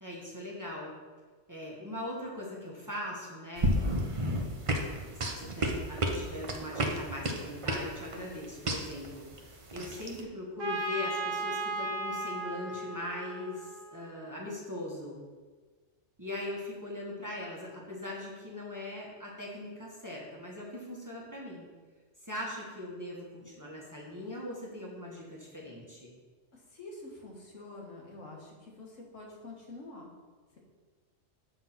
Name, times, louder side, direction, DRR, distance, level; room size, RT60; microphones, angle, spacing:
voice 1, 0.0-0.9 1.5-3.7 5.2-15.2 16.2-21.7 22.2-26.1, left 1 dB, 15° right, -4 dB, 1.3 m, -40 dB
sound 1, 3.6-10.2, right 1 dB, 35° right, 0.6 m, -32 dB
Trumpet, 10.6-14.3, right 2 dB, 80° right, 1.5 m, -36 dB
voice 2, 26.5-30.1, left 2 dB, 85° left, -1 dB, 1.8 m, -47 dB
7.5 x 3.8 x 5.8 m, 1.4 s
omnidirectional pair, 1.3 m